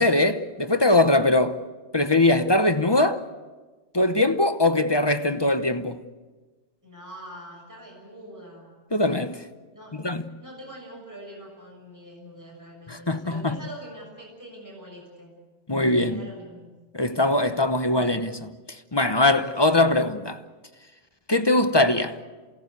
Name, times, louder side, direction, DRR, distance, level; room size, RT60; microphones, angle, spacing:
voice 1, 0.0-1.6 1.9-3.2 3.9-6.0 8.9-9.4 9.9-10.2 12.9-13.6 15.7-16.3 16.9-20.4 21.3-22.2, left 2 dB, 25° left, 0.9 m, -21 dB
voice 2, 6.8-8.8 9.7-10.1 10.4-15.4 15.8-16.7, right 1 dB, 15° right, 6.6 m, -44 dB
28.0 x 17.5 x 8.2 m
omnidirectional pair, 1.2 m